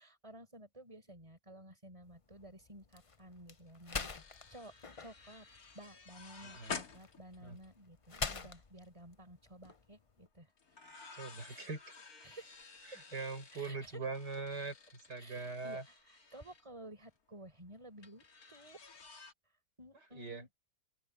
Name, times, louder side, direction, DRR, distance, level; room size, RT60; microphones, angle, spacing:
voice 1, 0.0-4.1 4.5-4.7 5.0-5.5 5.7-10.5 11.5-11.7 12.2-12.7 13.5-14.0 15.2-18.8 19.8-20.5, right 1 dB, 20° right, 5.1 m, -54 dB
sound 1, 2.0-10.3, left 4 dB, 35° left, 0.5 m, -46 dB
sound 2, 3.3-3.4 3.6-8.3 8.7-8.9 10.6-16.6 18.0-19.3, left 5 dB, 60° left, 2.7 m, -51 dB
voice 2, 6.4-6.8 7.4-7.6 11.1-11.8 12.9-14.8 15.1-15.8 20.1-20.4, right 4 dB, 80° right, 5.4 m, -41 dB
open air
omnidirectional pair, 1.8 m